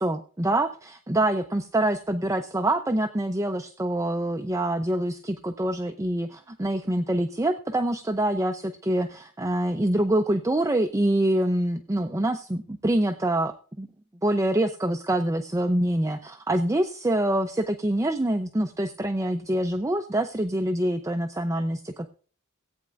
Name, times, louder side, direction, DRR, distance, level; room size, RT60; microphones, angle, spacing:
voice 1, 0.0-13.9 14.2-22.1, right 1 dB, 15° right, 7 dB, 0.5 m, -25 dB
17.5 x 8.7 x 2.4 m, 0.40 s
head